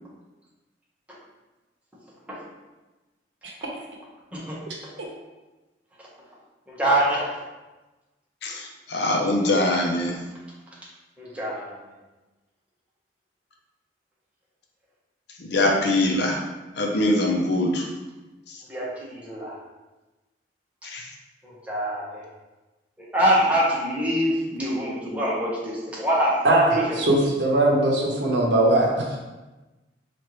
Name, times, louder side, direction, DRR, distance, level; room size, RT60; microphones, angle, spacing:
voice 1, 6.7-7.3 11.2-11.7 18.7-19.5 21.4-22.2 23.0-26.4 26.7-27.0, equal, 10° right, -7 dB, 1.0 m, -25 dB
voice 2, 8.9-10.1 15.5-16.4 16.8-17.8 20.9-21.0, left 1 dB, 65° left, 0 dB, 0.6 m, -22 dB
voice 3, 26.4-29.2, right 2 dB, 90° right, -2 dB, 0.8 m, -20 dB
4.4 x 2.5 x 3.1 m, 1.1 s
head